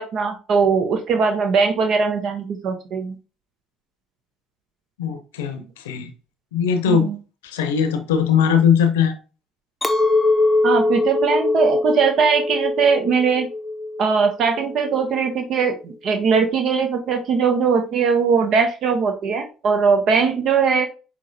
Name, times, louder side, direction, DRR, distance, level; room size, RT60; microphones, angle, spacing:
voice 1, 0.0-3.2 7.0-7.2 10.6-13.5 14.0-20.9, right 5 dB, 60° right, 5 dB, 0.7 m, -20 dB
voice 2, 5.0-6.1 6.5-7.1 7.4-9.2, left 7 dB, 85° left, 8 dB, 0.6 m, -20 dB
Chink clink, 9.8-15.2, left 2 dB, 10° left, 0.7 m, -22 dB
5.6 x 2.9 x 2.6 m, 0.33 s
hypercardioid pair, 60°, 0 cm